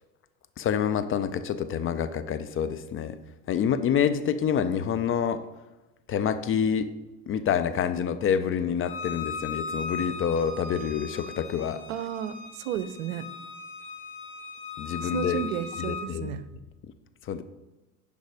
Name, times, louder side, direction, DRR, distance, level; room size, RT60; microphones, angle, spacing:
voice 1, 0.6-3.2 3.5-5.5 6.1-6.9 7.3-11.8 14.8-15.4 15.8-16.3 17.2-17.4, left 8 dB, 30° left, 11 dB, 0.5 m, -27 dB
Bowed string instrument, 8.8-16.1, left 4 dB, 80° left, 2.2 m, -38 dB
voice 2, 11.9-13.3 15.0-16.5, right 10 dB, 60° right, 14 dB, 0.7 m, -33 dB
10.5 x 5.4 x 4.9 m, 1.1 s
figure-of-eight pair, 70°, 46 cm